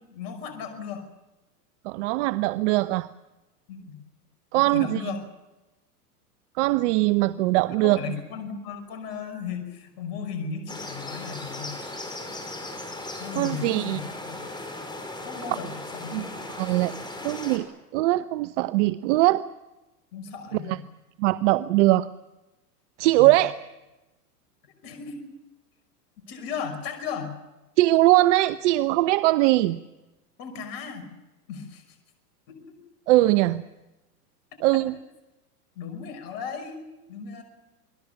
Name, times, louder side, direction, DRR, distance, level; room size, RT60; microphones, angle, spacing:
voice 1, 0.1-1.0 3.7-4.0 4.5-5.2 7.7-11.8 13.2-14.4 15.2-16.3 20.1-20.8 23.2-23.3 24.8-25.3 26.3-27.4 30.4-31.1 31.5-31.8 32.5-32.8 35.8-37.4, left 6 dB, 45° left, 6 dB, 5.8 m, -36 dB
voice 2, 1.8-3.1 4.5-5.1 6.6-8.0 13.3-14.0 16.1-16.2 16.6-16.9 17.2-17.7 17.9-19.4 20.5-20.8 21.2-22.1 23.0-23.5 27.8-29.8 33.1-33.6 34.6-35.0, right 18 dB, 50° right, 14 dB, 0.8 m, -21 dB
sound 1, 10.7-17.6, left 2 dB, 10° left, 5.2 m, -37 dB
28.0 x 21.0 x 7.1 m, 1.0 s
hypercardioid pair, 120°, 48 cm